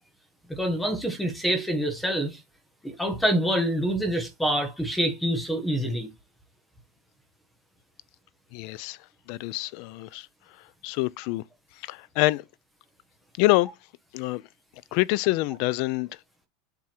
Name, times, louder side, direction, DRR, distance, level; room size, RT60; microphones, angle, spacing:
voice 1, 0.5-2.4 2.8-6.1, right 1 dB, 5° left, 1.2 m, -26 dB
voice 2, 8.5-9.0 9.3-10.3 10.8-11.4 11.8-12.4 13.4-13.7 14.1-14.4 14.9-16.1, left 19 dB, 55° left, 0.4 m, -26 dB
7.6 x 3.6 x 4.4 m
supercardioid pair, 155°, 0 cm